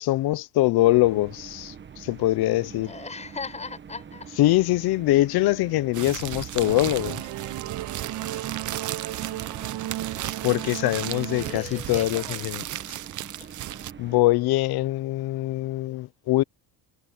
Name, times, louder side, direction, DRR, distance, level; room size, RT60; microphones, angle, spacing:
voice 1, 0.0-2.9 4.4-7.2 10.4-12.6 14.0-16.4, left 17 dB, 60° left, 0.8 m, -23 dB
sound 1, 0.8-14.2, right 7 dB, 25° right, 1.3 m, -45 dB
voice 2, 2.8-4.3 6.1-6.4 9.4-9.8 11.4-12.5, left 4 dB, 15° left, 5.7 m, -39 dB
sound 2, 5.9-13.9, right 13 dB, 45° right, 0.8 m, -35 dB
Singing / Musical instrument, 6.6-11.6, right 14 dB, 70° right, 3.0 m, -35 dB
cardioid pair, 145°, 41 cm